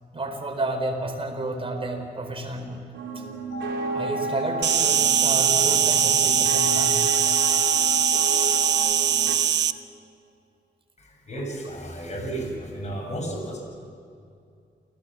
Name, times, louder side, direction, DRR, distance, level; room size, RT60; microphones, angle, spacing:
voice 1, 0.1-2.8 3.9-7.1 11.6-11.7, right 2 dB, 30° right, 4 dB, 4.5 m, -31 dB
sound 1, 2.9-9.4, right 4 dB, 90° right, 3.4 m, -34 dB
sound 2, 3.5-8.7, left 2 dB, 70° left, 4.1 m, -31 dB
Insect, 4.6-9.7, right 9 dB, 70° right, 0.8 m, -21 dB
voice 2, 11.0-13.6, right 1 dB, 40° left, 1 dB, 7.0 m, -33 dB
28.5 x 18.0 x 7.5 m, 2.4 s
cardioid pair, 105°, 19 cm